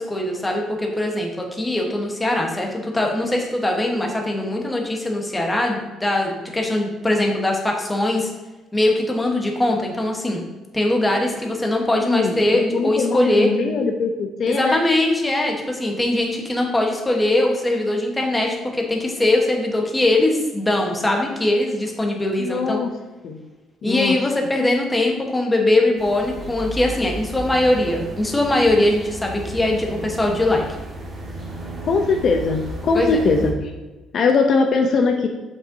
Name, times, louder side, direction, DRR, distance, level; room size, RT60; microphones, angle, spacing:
voice 1, 0.0-8.3 8.7-10.4 10.7-13.5 14.5-22.8 23.8-30.6 32.9-33.2, left 1 dB, 10° left, 1 dB, 1.1 m, -21 dB
voice 2, 12.0-14.8 22.4-22.9 23.2-23.4 23.8-24.1 31.8-33.7 34.1-35.3, left 4 dB, 55° left, 3 dB, 0.6 m, -21 dB
sound 1, 26.0-33.5, right 1 dB, 30° right, 1.4 m, -34 dB
7.1 x 5.4 x 2.7 m, 1.2 s
cardioid pair, 115°, 0 cm